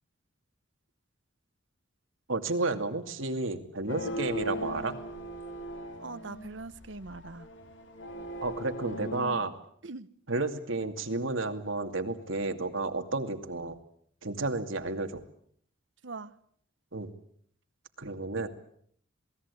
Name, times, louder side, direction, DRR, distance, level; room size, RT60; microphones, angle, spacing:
voice 1, 2.3-4.9 8.4-9.5 10.3-13.8 14.2-15.2 16.9-17.1 18.0-18.5, right 3 dB, 85° right, 2.5 m, -32 dB
sound 1, 3.9-9.4, equal, 65° left, 3.0 m, -39 dB
voice 2, 6.0-7.5 9.8-10.1 16.0-16.4, right 3 dB, 65° right, 1.0 m, -42 dB
27.5 x 20.0 x 8.4 m
head